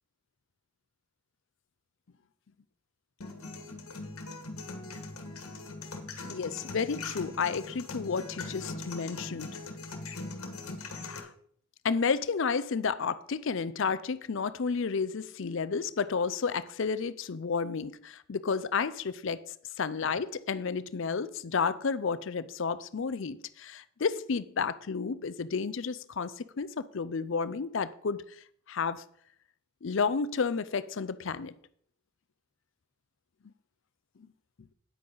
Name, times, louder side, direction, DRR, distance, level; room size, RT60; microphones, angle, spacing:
sound 1, 3.2-11.2, left 3 dB, 80° left, 1.5 m, -41 dB
voice 1, 6.3-9.5 11.0-11.3 11.8-19.4 19.8-28.2 28.7-29.0 29.8-31.5, left 5 dB, 55° left, 0.5 m, -31 dB
9.3 x 8.5 x 3.9 m
head